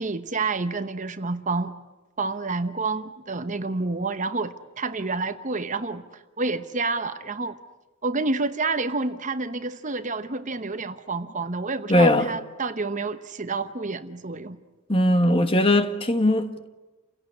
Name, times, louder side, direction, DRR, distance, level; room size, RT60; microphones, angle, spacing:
voice 1, 0.0-1.7 2.2-7.6 8.0-14.6, right 3 dB, 35° right, 1.0 m, -29 dB
voice 2, 11.9-12.3 14.9-16.7, left 1 dB, 25° left, 1.4 m, -19 dB
29.5 x 17.5 x 9.8 m
head